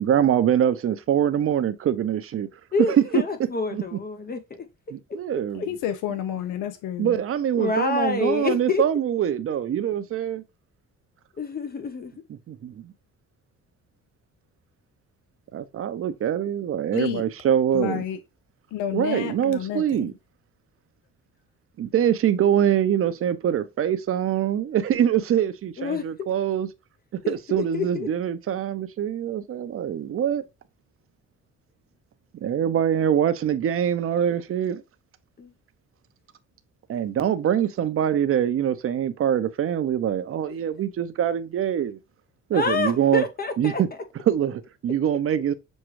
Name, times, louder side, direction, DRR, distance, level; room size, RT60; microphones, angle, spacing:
voice 1, 0.0-2.5 2.9-3.0 3.7-3.8 4.9-5.6 7.0-10.4 12.5-12.9 15.5-18.1 18.9-20.1 21.8-26.7 27.1-30.4 32.4-34.8 36.9-42.0 42.5-43.2 43.6-43.9 44.3-45.5, right 9 dB, 50° right, 0.6 m, -24 dB
voice 2, 2.7-4.7 5.1-5.2 5.6-5.9 7.5-8.9 11.4-12.1 25.8-26.3 27.2-28.1 35.4-35.5 40.5-40.6 42.5-43.8, left 4 dB, 30° left, 0.5 m, -28 dB
voice 3, 5.7-7.1 16.9-17.2 17.7-18.2 18.7-20.1, left 11 dB, 90° left, 0.5 m, -30 dB
6.2 x 2.3 x 3.0 m
cardioid pair, 90°, 30 cm